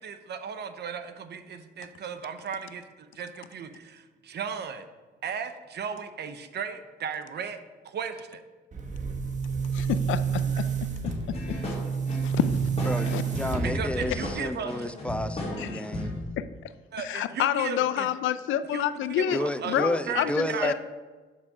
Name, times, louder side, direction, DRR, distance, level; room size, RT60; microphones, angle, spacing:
voice 1, 0.0-4.9 5.2-7.6 7.8-8.4 13.6-14.9 16.9-18.1 18.7-19.8 20.1-20.7, right 6 dB, 60° right, 10 dB, 0.7 m, -36 dB
Boom, 8.7-14.5, right 6 dB, 40° right, 1.2 m, -30 dB
voice 2, 9.7-10.6 12.2-12.4 13.1-13.2 15.6-15.8 16.4-16.5 17.0-19.4 19.7-20.7, left 11 dB, 80° left, 13 dB, 0.5 m, -28 dB
sound 1, 11.0-16.2, left 1 dB, 30° left, 1.9 m, -34 dB
voice 3, 12.9-16.1 19.3-20.7, left 1 dB, 5° left, 11 dB, 0.4 m, -31 dB
7.4 x 4.9 x 5.4 m, 1.3 s
cardioid pair, 90°, 20 cm